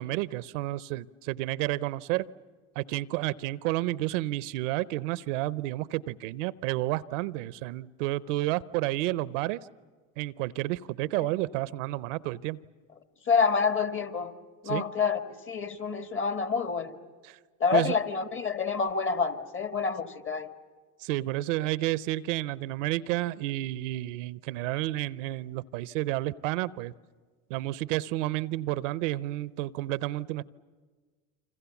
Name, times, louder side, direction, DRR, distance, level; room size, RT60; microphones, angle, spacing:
voice 1, 0.0-2.3 2.8-9.7 10.2-12.6 14.6-14.8 17.2-17.4 17.7-18.0 21.0-26.9 27.5-30.4, right 17 dB, 80° right, 19 dB, 0.7 m, -31 dB
voice 2, 13.3-14.3 14.6-17.0 17.6-20.5, left 5 dB, 35° left, 9 dB, 1.7 m, -28 dB
28.0 x 26.0 x 7.1 m, 1.5 s
hypercardioid pair, 85°, 37 cm